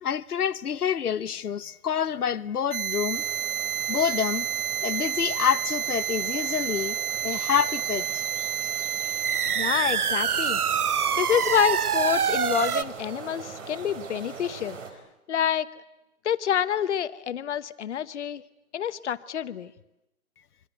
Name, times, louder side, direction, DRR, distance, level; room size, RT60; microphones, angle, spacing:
voice 1, 0.0-3.3 3.9-4.5 4.8-7.0 7.2-8.2, left 8 dB, 85° left, 0.9 m, -27 dB
sound 1, 2.7-12.8, right 8 dB, 80° right, 1.1 m, -27 dB
sound 2, 3.1-14.9, right 5 dB, 55° right, 4.7 m, -42 dB
voice 2, 9.5-10.6 11.2-14.8 15.3-15.7 16.2-18.4 18.7-19.7, left 9 dB, 50° left, 1.2 m, -27 dB
25.5 x 24.0 x 8.1 m
hypercardioid pair, 150°, 44 cm